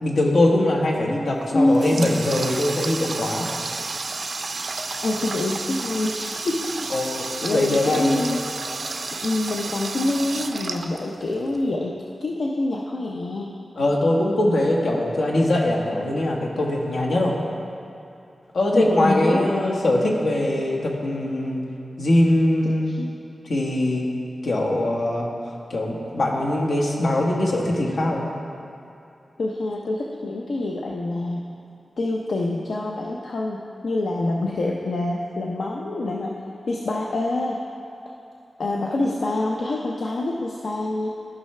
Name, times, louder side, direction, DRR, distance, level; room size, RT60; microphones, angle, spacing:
voice 1, 0.0-3.5 6.9-7.2 7.5-8.1 13.8-17.4 18.5-21.6 22.0-22.9 23.4-24.1 24.4-25.3 25.7-28.3, left 1 dB, 85° left, -2 dB, 1.2 m, -22 dB
Water tap faucet, 1.4-11.6, right 3 dB, 60° right, 0.5 m, -31 dB
voice 2, 1.5-2.2 5.0-6.7 7.2-8.6 9.2-13.5 18.7-19.8 22.9-23.2 29.4-31.5 32.0-36.4 36.7-37.6 38.6-41.1, left 2 dB, 70° left, -1 dB, 0.6 m, -26 dB
13.5 x 5.7 x 3.2 m, 2.6 s
wide cardioid pair, 140°, 0 cm